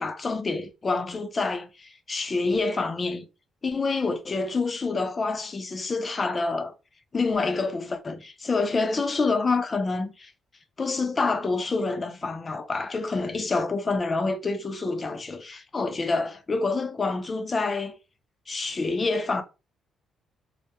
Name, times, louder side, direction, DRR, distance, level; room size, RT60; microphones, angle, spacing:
voice 1, 0.0-3.3 3.6-6.7 7.1-10.3 10.8-18.0 18.5-19.4, left 3 dB, 30° left, 0.4 m, -27 dB
2.2 x 2.1 x 2.7 m
cardioid pair, 90°, 0 cm